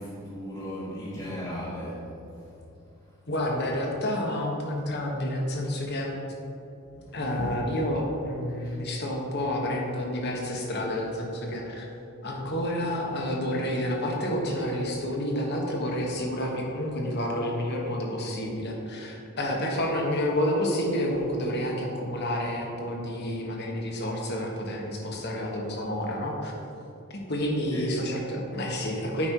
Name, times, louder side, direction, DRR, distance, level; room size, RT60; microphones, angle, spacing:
voice 1, 0.0-2.1 7.4-7.5 8.6-8.7 12.4-12.5 27.7-27.9, equal, 25° left, -9 dB, 1.2 m, -36 dB
voice 2, 3.3-6.1 7.1-11.9 12.2-26.5 27.1-29.3, left 1 dB, 50° left, 0 dB, 1.3 m, -29 dB
8.6 x 5.2 x 4.5 m, 2.8 s
head